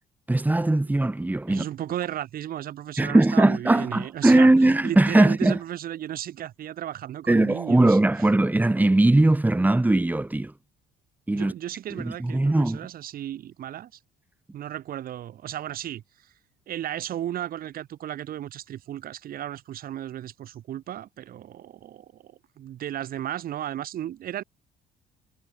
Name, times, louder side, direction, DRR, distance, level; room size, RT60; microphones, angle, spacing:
voice 1, 0.3-1.6 3.0-5.6 7.3-10.5 11.3-11.5 11.9-12.9, right 2 dB, 10° right, 3.8 m, -20 dB
voice 2, 1.5-8.0 11.3-13.9 14.5-16.0 16.7-24.4, right 11 dB, 60° right, 3.0 m, -34 dB
cardioid pair, 110°, 17 cm